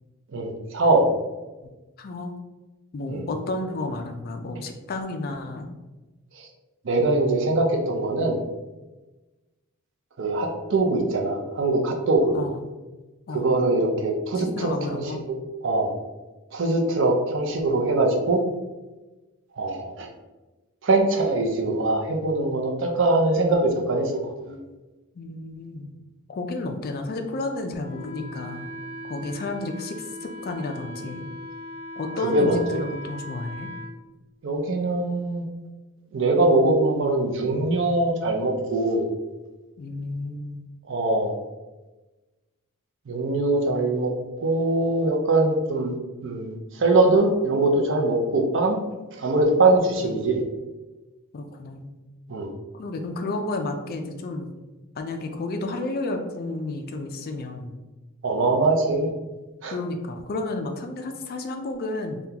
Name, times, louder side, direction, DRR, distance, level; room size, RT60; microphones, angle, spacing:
voice 1, 0.3-1.1 3.1-3.2 6.4-6.5 6.8-8.4 10.2-12.4 13.3-15.1 15.6-15.9 16.5-18.4 19.5-20.1 20.8-24.6 32.2-32.8 34.4-35.4 36.1-39.0 40.9-41.4 43.1-44.1 44.4-46.0 46.2-48.8 49.1-50.4 52.3-52.5 58.2-59.1 59.6-59.8, right 2 dB, 55° right, 2 dB, 0.5 m, -22 dB
voice 2, 2.0-2.3 2.9-5.7 7.0-7.6 12.3-12.6 13.3-13.5 14.4-15.2 25.2-25.9 26.3-28.7 29.1-31.3 32.0-33.7 39.8-40.7 50.0-50.4 51.3-51.9 52.7-54.5 55.0-57.8 59.7-62.2, left 2 dB, 45° left, 5 dB, 0.3 m, -32 dB
Wind instrument woodwind instrument, 27.8-33.9, left 1 dB, 10° left, 1.1 m, -39 dB
3.6 x 2.2 x 2.8 m, 1.1 s
head